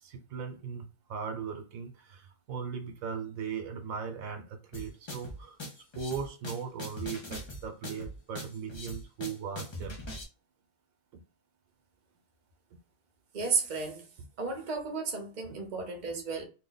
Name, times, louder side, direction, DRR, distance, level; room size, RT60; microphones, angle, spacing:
voice 1, 0.0-0.8 1.1-5.6 5.9-10.0, right 6 dB, 85° right, 1.1 m, -38 dB
sound 1, 4.7-10.2, left 1 dB, 35° left, 0.4 m, -41 dB
voice 2, 13.3-14.0 14.4-16.4, right 4 dB, 40° right, 0.8 m, -33 dB
2.8 x 2.2 x 3.8 m
omnidirectional pair, 1.4 m